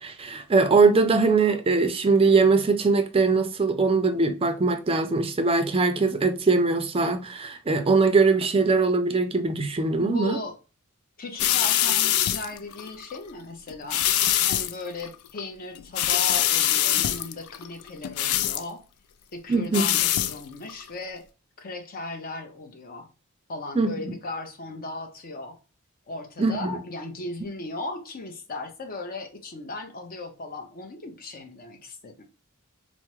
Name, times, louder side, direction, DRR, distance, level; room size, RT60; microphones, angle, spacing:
voice 1, 0.0-10.4 19.5-19.8 23.8-24.1 26.4-26.8, right 4 dB, 25° right, 0.4 m, -21 dB
voice 2, 10.0-10.5 11.2-14.0 14.5-18.8 19.3-21.2 21.6-23.1 23.5-25.6 26.1-32.2, left 2 dB, 40° left, 0.7 m, -37 dB
sound 1, 11.4-13.2 13.7-14.7 15.0-15.4 15.8-18.6 19.5-20.4 20.7-20.9, left 11 dB, 75° left, 0.3 m, -24 dB
3.3 x 2.0 x 2.9 m
head